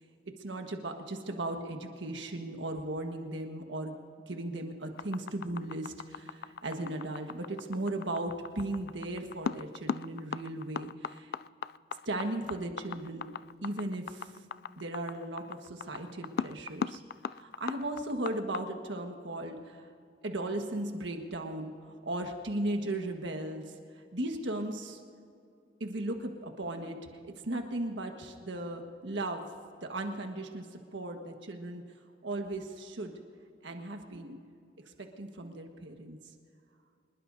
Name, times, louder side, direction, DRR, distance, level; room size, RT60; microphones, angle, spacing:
voice 1, 0.3-4.0 4.3-11.3 12.0-13.3 13.6-14.3 14.8-17.0 17.3-19.9 20.2-23.7 24.1-25.0 25.8-27.0 27.2-29.4 29.8-31.8 32.2-33.1 33.6-34.4 35.0-36.2, right 1 dB, 85° right, 3 dB, 1.5 m, -37 dB
sound 1, 5.0-18.6, left 6 dB, 55° left, 0.3 m, -37 dB
25.5 x 21.0 x 2.7 m, 2.3 s
head